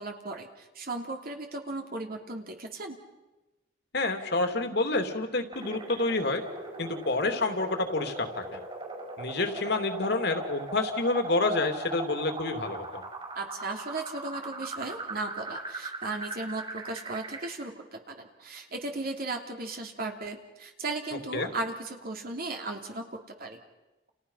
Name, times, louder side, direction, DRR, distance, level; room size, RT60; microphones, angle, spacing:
voice 1, 0.0-3.0 13.3-23.6, right 2 dB, 55° right, 3 dB, 3.1 m, -36 dB
voice 2, 3.9-6.4 6.8-8.6 9.2-13.0 21.3-21.5, left 2 dB, 60° left, 6 dB, 2.9 m, -28 dB
sound 1, 5.5-17.5, right 2 dB, 30° right, 5.1 m, -39 dB
30.0 x 29.5 x 5.7 m, 1.0 s
head